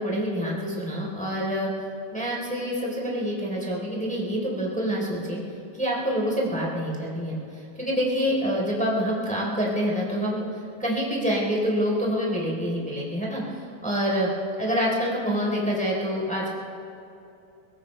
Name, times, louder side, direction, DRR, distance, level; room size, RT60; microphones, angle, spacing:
voice 1, 0.0-1.7 2.1-5.4 5.7-7.3 7.8-10.4 10.8-13.4 13.8-14.3 14.6-16.5, equal, ahead, -4 dB, 2.5 m, -26 dB
23.0 x 18.0 x 3.3 m, 2.7 s
omnidirectional pair, 5.3 m